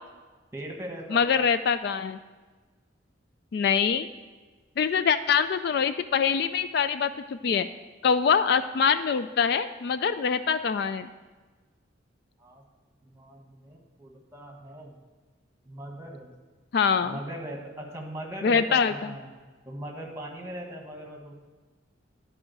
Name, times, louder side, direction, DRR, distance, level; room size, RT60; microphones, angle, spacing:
voice 1, 0.5-1.5 12.4-12.6 13.0-14.9 15.6-16.3 17.0-19.3 19.6-21.3, right 1 dB, 15° right, 0 dB, 1.4 m, -40 dB
voice 2, 1.1-2.2 3.5-4.1 4.8-7.7 8.0-11.1 16.7-17.2 18.4-19.1, left 6 dB, 55° left, 12 dB, 0.3 m, -24 dB
11.0 x 4.9 x 7.7 m, 1.3 s
head